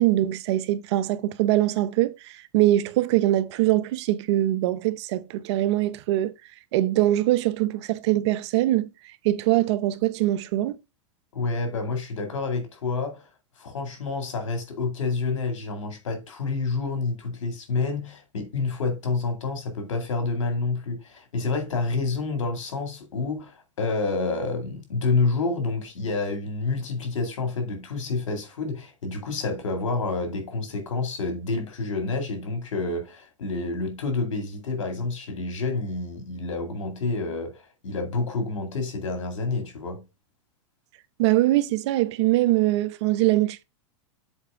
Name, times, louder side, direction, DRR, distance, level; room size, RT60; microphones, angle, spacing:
voice 1, 0.0-6.3 6.7-8.9 9.2-10.8 41.2-43.6, right 15 dB, 60° right, 0.7 m, -22 dB
voice 2, 11.3-13.2 13.6-40.0, left 3 dB, 85° left, 2.2 m, -28 dB
7.3 x 4.2 x 3.6 m
hypercardioid pair, 120°, 16 cm